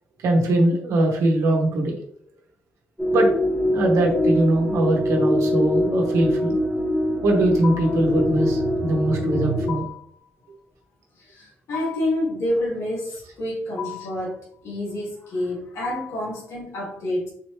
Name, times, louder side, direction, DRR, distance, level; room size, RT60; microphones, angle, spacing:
voice 1, 0.2-2.0 3.1-3.3 3.7-6.6 7.2-9.9, right 1 dB, 90° right, 1 dB, 0.9 m, -21 dB
sound 1, 3.0-9.7, equal, ahead, 0.9 m, -23 dB
sound 2, 7.6-8.1 9.7-10.2 11.7-12.2 13.8-14.3 15.8-16.3, left 11 dB, 90° left, 0.6 m, -35 dB
voice 2, 11.2-17.3, left 1 dB, 65° left, -5 dB, 1.6 m, -28 dB
4.1 x 2.9 x 3.2 m, 0.66 s
wide cardioid pair, 180°, 5 cm